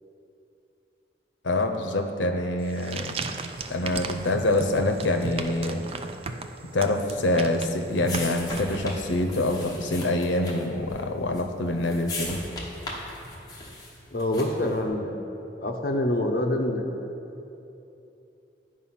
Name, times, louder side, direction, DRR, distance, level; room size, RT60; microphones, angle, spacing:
voice 1, 1.4-3.2 3.7-5.8 6.7-12.4, left 2 dB, 85° left, 6 dB, 0.7 m, -25 dB
sound 1, 2.6-9.2, right 4 dB, 30° right, 0.3 m, -36 dB
sound 2, 7.3-14.8, left 2 dB, 20° left, 1.2 m, -38 dB
voice 2, 14.1-15.2 15.6-16.9, left 1 dB, 50° left, 2 dB, 0.8 m, -26 dB
10.0 x 5.0 x 5.8 m, 2.9 s
head